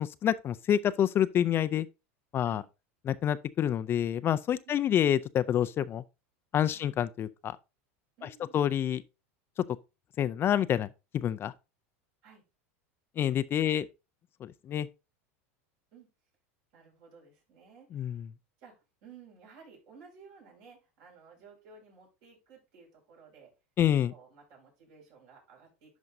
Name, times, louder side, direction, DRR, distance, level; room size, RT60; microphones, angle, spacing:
voice 1, 0.0-1.9 2.3-2.6 3.1-6.0 6.5-7.6 8.5-9.0 10.2-10.9 11.1-11.5 13.2-13.8 14.4-14.9 17.9-18.2 23.8-24.1, left 10 dB, 30° left, 0.4 m, -27 dB
voice 2, 4.6-5.0 6.7-6.9 8.2-8.6 12.2-12.4 13.6-13.8 15.9-16.1 16.7-18.2 18.6-23.5 24.1-26.0, right 5 dB, 60° right, 5.3 m, -55 dB
11.0 x 5.2 x 2.6 m
supercardioid pair, 120°, 7 cm